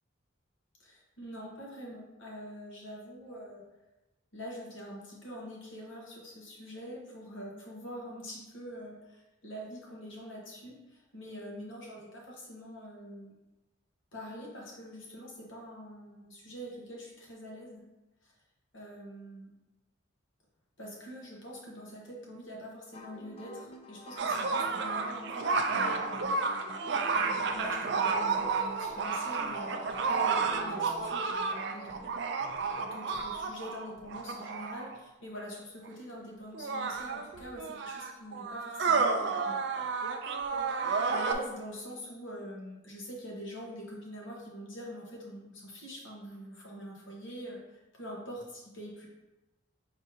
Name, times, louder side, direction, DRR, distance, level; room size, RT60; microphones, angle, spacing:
voice 1, 0.8-3.6 4.3-13.3 14.1-17.8 18.2-18.3 18.7-19.5 20.8-26.3 27.1-32.1 32.6-39.6 39.9-40.1 41.1-49.1, equal, 70° left, -3 dB, 1.2 m, -44 dB
sound 1, 22.9-31.1, left 3 dB, 30° left, 0.3 m, -47 dB
sound 2, 24.2-35.0 35.9-36.0 36.5-41.3, right 4 dB, 55° right, 0.4 m, -31 dB
5.1 x 3.6 x 2.7 m, 1.0 s
head